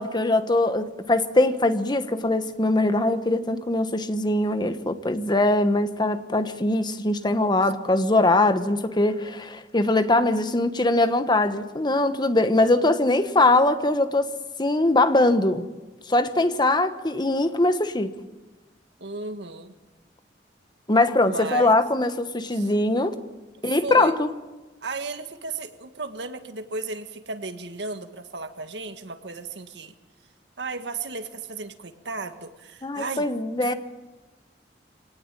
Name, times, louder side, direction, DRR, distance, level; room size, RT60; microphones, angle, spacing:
voice 1, 0.0-14.3 14.6-15.7 16.1-18.1 20.9-23.1 23.6-24.3 32.8-33.7, left 2 dB, 25° left, 1.2 m, -22 dB
voice 2, 19.0-19.7 21.2-21.8 22.5-22.7 23.6-24.1 24.8-29.9 30.6-33.3 33.6-33.7, right 3 dB, 85° right, 1.7 m, -35 dB
25.0 x 18.5 x 9.1 m
head